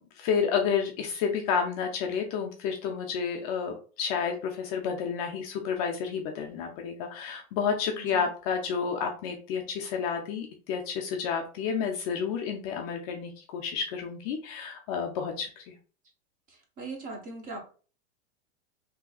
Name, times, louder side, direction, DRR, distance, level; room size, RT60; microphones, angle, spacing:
voice 1, 0.2-15.7, left 6 dB, 35° left, 2 dB, 0.4 m, -30 dB
voice 2, 8.0-8.3 16.5-17.6, right 3 dB, 25° right, 2 dB, 0.7 m, -40 dB
3.5 x 2.8 x 2.3 m, 0.38 s
supercardioid pair, 155°, 34 cm